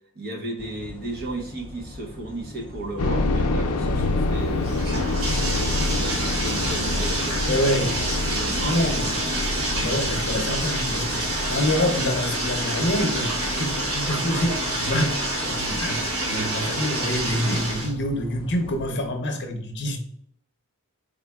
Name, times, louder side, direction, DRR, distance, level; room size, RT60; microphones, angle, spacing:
voice 1, 0.1-4.9 5.9-10.1 11.7-11.8, right 2 dB, 45° right, 0 dB, 1.1 m, -35 dB
sound 1, 0.6-18.9, left 2 dB, 25° left, 0.5 m, -43 dB
sound 2, 3.0-17.8 18.1-18.2 18.8-19.1, left 2 dB, 85° left, 0.6 m, -28 dB
Bathtub (filling or washing), 3.9-17.9, right 1 dB, 70° right, 1.3 m, -28 dB
voice 2, 7.5-7.9 8.6-9.2 9.8-20.0, left 1 dB, 50° left, 3 dB, 0.7 m, -26 dB
4.4 x 3.7 x 2.3 m, 0.67 s
head